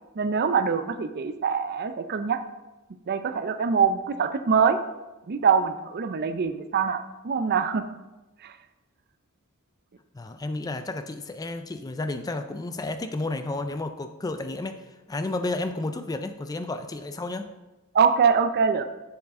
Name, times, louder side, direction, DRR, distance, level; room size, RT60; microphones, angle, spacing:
voice 1, 0.2-2.4 3.1-4.8 5.3-7.9 8.4-8.5 17.9-18.8, right 6 dB, 45° right, 10 dB, 0.5 m, -24 dB
voice 2, 10.1-17.5, left 2 dB, 15° left, 8 dB, 0.3 m, -32 dB
7.3 x 7.2 x 3.7 m, 1.1 s
head